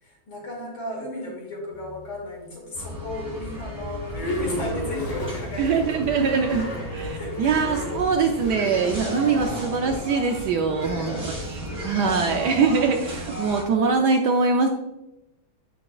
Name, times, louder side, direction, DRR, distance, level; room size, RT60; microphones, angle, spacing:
voice 1, 0.0-6.3 6.7-6.8 7.1-7.6 10.8-11.4, left 1 dB, 70° left, -3 dB, 2.9 m, -35 dB
sound 1, 1.7-2.4 2.9-13.4, equal, 45° left, 0.4 m, -36 dB
sound 2, 2.7-13.6, equal, 25° right, 1.5 m, -35 dB
sound 3, 4.1-11.7, equal, 45° right, 1.8 m, -40 dB
voice 2, 5.6-14.7, right 5 dB, 75° right, 3 dB, 1.0 m, -23 dB
8.4 x 5.5 x 2.4 m, 0.91 s
omnidirectional pair, 2.2 m